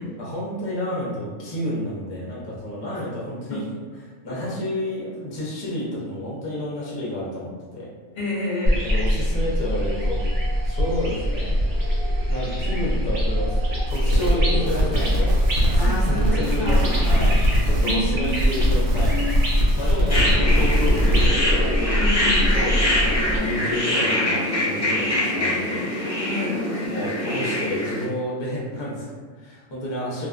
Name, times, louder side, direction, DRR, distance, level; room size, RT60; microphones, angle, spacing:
voice 1, 0.2-3.6 4.2-7.9 8.8-10.2 10.6-11.5 12.3-15.4 15.7-17.3 17.6-19.1 19.8-21.8 22.5-25.9 26.8-30.3, left 1 dB, 35° left, -6 dB, 0.4 m, -30 dB
voice 2, 8.2-8.8 15.7-17.1 17.8-19.4 22.0-22.5 26.3-26.6, left 1 dB, 60° left, -6 dB, 0.7 m, -29 dB
sound 1, 8.7-23.4, equal, 60° right, 0.8 m, -23 dB
sound 2, 13.9-14.3 14.7-17.9 18.2-21.3, equal, 80° right, 1.0 m, -23 dB
sound 3, 20.1-28.1, left 1 dB, 15° left, 0.8 m, -24 dB
2.4 x 2.3 x 2.4 m, 1.4 s
omnidirectional pair, 1.3 m